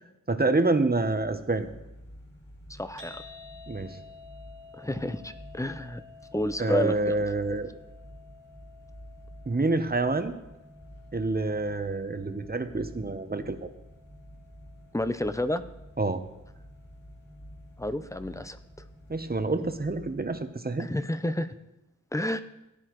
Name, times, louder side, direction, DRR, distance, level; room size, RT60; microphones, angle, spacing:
voice 1, 0.3-1.7 3.7-4.0 6.6-7.7 9.5-10.4 11.1-13.6 16.0-16.2 19.1-20.9, right 3 dB, 30° right, 9 dB, 0.8 m, -27 dB
sound 1, 0.9-20.4, equal, 30° left, 3.1 m, -50 dB
voice 2, 2.7-3.2 4.7-6.0 6.3-7.2 14.9-15.6 17.8-18.6 20.8-21.5 22.1-22.4, left 1 dB, 10° left, 11 dB, 0.6 m, -30 dB
sound 2, 3.0-19.2, left 4 dB, 75° right, 2.5 m, -54 dB
17.5 x 9.9 x 3.1 m, 0.95 s
wide cardioid pair, 70°, 33 cm